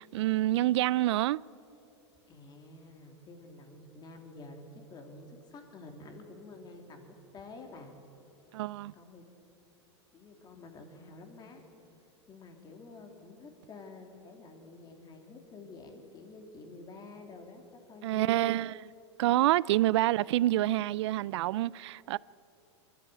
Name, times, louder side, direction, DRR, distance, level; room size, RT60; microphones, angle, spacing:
voice 1, 0.0-1.4 8.5-8.9 18.0-18.8 19.2-22.2, right 15 dB, 70° right, 0.4 m, -27 dB
voice 2, 2.3-7.9 8.9-9.3 10.1-11.6 12.3-18.5, left 3 dB, 25° left, 2.9 m, -49 dB
22.5 x 13.0 x 9.0 m
hypercardioid pair, 120°, 15 cm